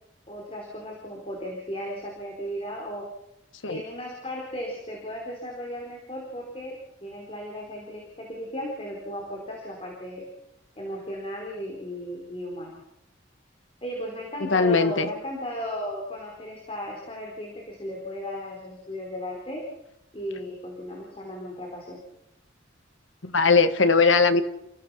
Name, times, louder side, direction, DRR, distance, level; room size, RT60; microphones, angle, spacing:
voice 1, 0.3-3.1 3.7-10.3 10.8-12.8 13.8-19.7 20.1-22.0, equal, 30° left, -1 dB, 4.5 m, -36 dB
voice 2, 14.4-15.1 23.2-24.4, left 4 dB, 75° left, 10 dB, 1.4 m, -20 dB
29.5 x 16.0 x 5.8 m, 0.81 s
head